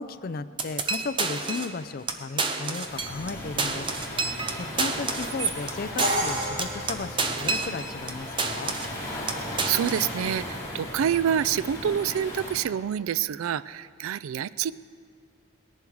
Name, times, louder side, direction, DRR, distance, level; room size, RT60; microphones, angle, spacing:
voice 1, 0.0-8.7, left 4 dB, 45° left, 12 dB, 0.4 m, -35 dB
sound 1, 0.6-1.8 2.1-2.2 2.4-3.3 3.6-8.1 8.4-9.0 9.3-10.1, right 4 dB, 25° right, 0.7 m, -29 dB
Waves surf, 2.8-12.6, left 1 dB, 15° left, 2.7 m, -37 dB
Crash cymbal, 6.0-7.9, right 1 dB, 40° right, 1.5 m, -30 dB
voice 2, 9.7-14.7, right 9 dB, 85° right, 17 dB, 0.3 m, -27 dB
19.5 x 11.0 x 4.7 m, 2.2 s
head